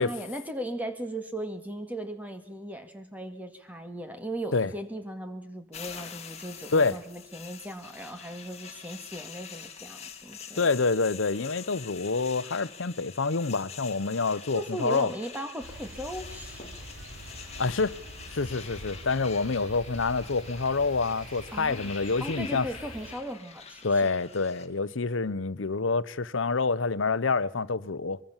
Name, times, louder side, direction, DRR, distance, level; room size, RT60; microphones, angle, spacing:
voice 1, 0.0-10.7 14.5-16.6 21.5-21.9 22.2-23.8, right 1 dB, 10° right, 2.2 m, -37 dB
sound 1, 5.7-24.7, left 7 dB, 30° left, 2.2 m, -45 dB
voice 2, 10.6-15.1 17.6-18.0 18.3-22.7 23.8-28.2, left 4 dB, 70° left, 0.8 m, -27 dB
sound 2, 15.6-23.1, right 1 dB, 75° right, 6.8 m, -45 dB
sound 3, 21.0-22.2, right 3 dB, 45° right, 6.2 m, -56 dB
24.0 x 22.5 x 7.3 m
head